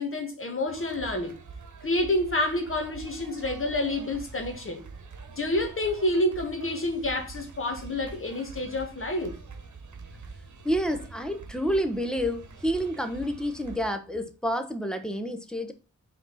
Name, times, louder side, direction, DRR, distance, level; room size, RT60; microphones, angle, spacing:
voice 1, 0.0-1.4 1.8-4.8 5.4-9.3, left 1 dB, 45° left, 1.7 m, -28 dB
sound 1, 0.7-13.8, right 4 dB, 75° right, 1.4 m, -45 dB
voice 2, 10.6-15.7, equal, ahead, 0.9 m, -29 dB
5.2 x 4.2 x 5.6 m
wide cardioid pair, 125°, 30 cm